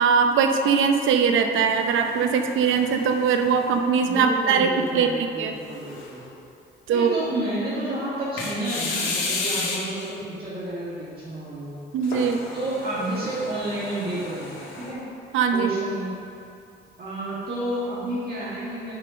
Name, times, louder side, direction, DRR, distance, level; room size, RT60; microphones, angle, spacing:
voice 1, 0.0-4.7 4.9-5.1 5.4-5.5 6.9-7.2 11.9-12.4 15.3-15.7, right 6 dB, 85° right, 6 dB, 0.8 m, -21 dB
sound 1, 1.7-4.2 4.8-4.9 5.6-6.3 8.4-10.1 12.0-14.9, left 3 dB, 80° left, 2.2 m, -33 dB
voice 2, 4.0-6.2 6.9-11.7 12.5-15.0 15.5-16.1 17.0-18.9, right 1 dB, 50° right, -9 dB, 2.3 m, -30 dB
9.6 x 5.6 x 5.3 m, 2.5 s
cardioid pair, 90°, 20 cm